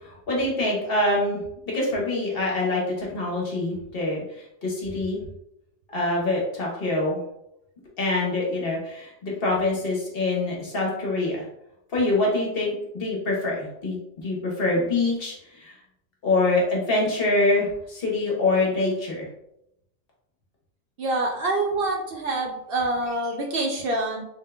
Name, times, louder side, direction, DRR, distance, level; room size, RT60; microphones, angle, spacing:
voice 1, 0.0-1.4 1.7-5.2 5.9-7.2 8.0-11.4 11.9-15.7 16.2-19.3, left 2 dB, 55° left, -3 dB, 1.2 m, -25 dB
voice 2, 21.0-24.2, right 2 dB, 60° right, 1 dB, 0.7 m, -26 dB
3.7 x 3.6 x 2.2 m, 0.81 s
omnidirectional pair, 1.2 m